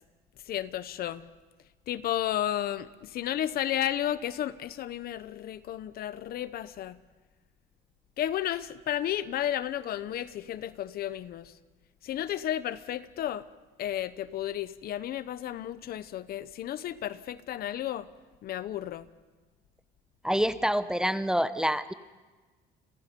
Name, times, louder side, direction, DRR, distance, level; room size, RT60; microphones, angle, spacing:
voice 1, 0.4-1.3 1.9-7.0 8.2-11.5 12.0-13.5 13.8-18.1 18.4-19.1, left 11 dB, 65° left, 1.0 m, -33 dB
voice 2, 20.2-21.9, equal, 5° right, 0.9 m, -27 dB
30.0 x 22.5 x 5.4 m
cardioid pair, 110°, 17 cm